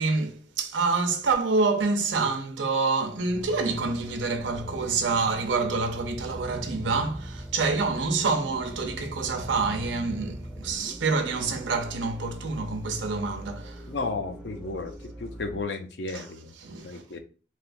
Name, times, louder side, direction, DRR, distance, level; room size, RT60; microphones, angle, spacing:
voice 1, 0.0-13.9 16.1-16.3 16.6-17.2, right 4 dB, 85° right, 0.6 m, -27 dB
sound 1, 3.3-15.6, right 1 dB, 5° right, 0.4 m, -40 dB
voice 2, 13.9-14.9 15.2-16.5 16.8-17.2, left 3 dB, 65° left, 0.5 m, -33 dB
3.2 x 2.8 x 2.5 m
head